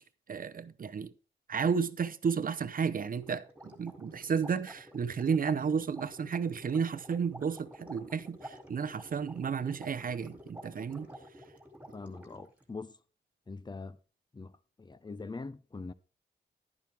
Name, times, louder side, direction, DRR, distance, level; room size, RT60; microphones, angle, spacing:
voice 1, 0.3-1.1 1.5-11.1, right 6 dB, 50° right, 0.7 m, -32 dB
sound 1, 3.2-12.6, equal, 10° right, 2.5 m, -50 dB
voice 2, 11.9-13.0 13.5-14.0 14.3-15.9, left 3 dB, 25° left, 0.7 m, -43 dB
11.0 x 10.5 x 3.4 m
wide cardioid pair, 100°, 19 cm